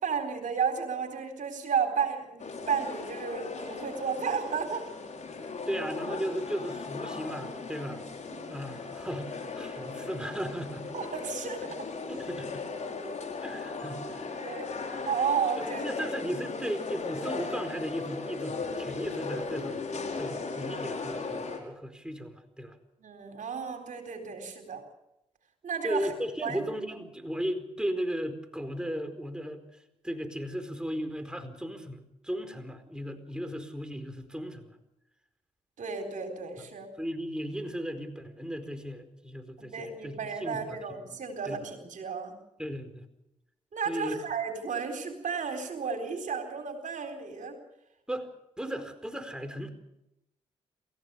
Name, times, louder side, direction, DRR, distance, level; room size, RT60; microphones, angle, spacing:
voice 1, 0.0-4.8 8.3-8.5 10.9-11.7 14.3-14.7 15.1-15.9 23.0-24.8 25.6-26.1 26.4-26.7 35.8-36.9 39.6-42.3 43.7-47.6 48.6-48.8, right 6 dB, 65° right, 5 dB, 4.0 m, -33 dB
gallery ambience eq, 2.4-21.6, left 4 dB, 55° left, 5.7 m, -37 dB
voice 2, 5.7-8.0 8.5-10.9 12.1-12.6 13.4-14.3 15.6-19.8 20.1-22.7 25.8-34.8 37.0-40.8 41.5-41.6 42.6-43.0 43.9-44.2 48.1-48.3 48.6-49.7, equal, 5° right, 7 dB, 4.6 m, -36 dB
28.0 x 15.5 x 7.0 m, 0.85 s
supercardioid pair, 45°, 14 cm